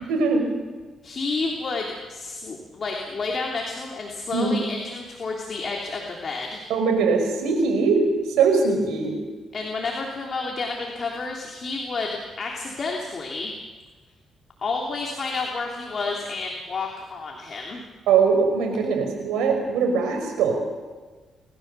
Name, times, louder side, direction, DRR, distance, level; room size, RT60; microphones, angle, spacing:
voice 1, 0.1-0.5 4.3-4.5 6.7-8.0 8.4-9.1 18.1-20.6, right 5 dB, 90° right, 4 dB, 5.2 m, -21 dB
voice 2, 1.0-6.6 9.5-13.5 14.6-17.8, left 3 dB, 45° left, 0 dB, 3.2 m, -30 dB
29.0 x 14.5 x 6.9 m, 1.3 s
cardioid pair, 90°, 0 cm